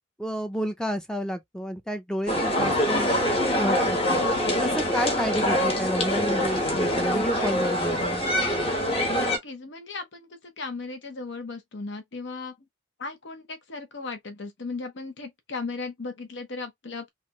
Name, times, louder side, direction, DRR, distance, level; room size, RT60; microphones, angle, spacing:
voice 1, 0.2-3.1 3.6-4.2 4.6-8.2, equal, 5° left, 0.5 m, -30 dB
sound 1, 2.3-9.4, equal, 30° left, 1.0 m, -24 dB
voice 2, 9.0-12.5 13.0-17.1, left 3 dB, 65° left, 0.8 m, -36 dB
3.2 x 2.4 x 2.9 m
head